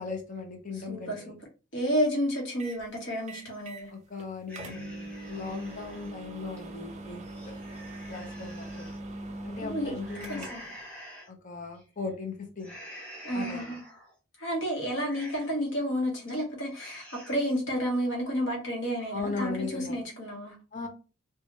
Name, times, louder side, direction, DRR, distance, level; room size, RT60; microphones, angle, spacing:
voice 1, 0.0-1.3 3.9-7.2 8.1-8.9 9.4-10.5 11.3-12.7 13.3-13.7 19.1-20.0 20.7-20.9, left 4 dB, 40° left, 2 dB, 0.7 m, -38 dB
voice 2, 0.7-1.4 1.7-3.9 9.6-10.0 10.3-10.7 13.2-13.8 14.4-20.5, equal, 60° left, 0 dB, 1.2 m, -31 dB
sound 1, 2.6-2.8 3.3-3.9 4.2-4.3 4.5-10.8, right 2 dB, 35° right, 0.4 m, -41 dB
sound 2, 4.5-6.1 6.6-6.7 7.2-9.0 10.0-11.3 11.7-12.1 12.6-14.1 14.5-14.6 15.0-15.7 16.1-16.4 16.7-17.6, equal, 5° left, 0.7 m, -47 dB
2.9 x 2.4 x 2.6 m, 0.32 s
head